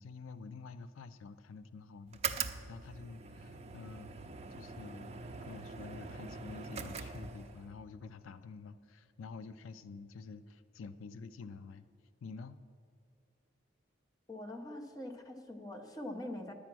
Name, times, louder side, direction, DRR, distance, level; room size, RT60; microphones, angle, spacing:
voice 1, 0.0-4.1 4.5-5.1 5.4-11.9 12.2-12.6, left 4 dB, 90° left, 13 dB, 0.4 m, -49 dB
sound 1, 2.1-7.7, right 5 dB, 30° right, 0.5 m, -42 dB
voice 2, 14.3-16.5, left 1 dB, 20° left, 2 dB, 0.9 m, -43 dB
10.5 x 8.5 x 6.1 m, 2.4 s
head